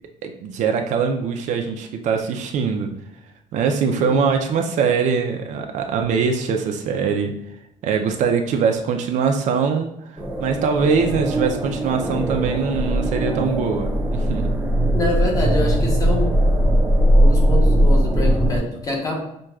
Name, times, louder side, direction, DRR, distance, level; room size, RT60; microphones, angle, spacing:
voice 1, 0.2-2.9 3.5-7.4 7.8-9.9 10.4-14.5, right 6 dB, 60° right, 4 dB, 0.4 m, -22 dB
voice 2, 4.0-4.3 14.9-16.4 17.2-19.2, left 2 dB, 25° left, -1 dB, 0.9 m, -25 dB
sound 1, 10.2-18.6, equal, 10° right, 0.5 m, -19 dB
6.1 x 2.2 x 2.3 m, 0.79 s
cardioid pair, 145°, 14 cm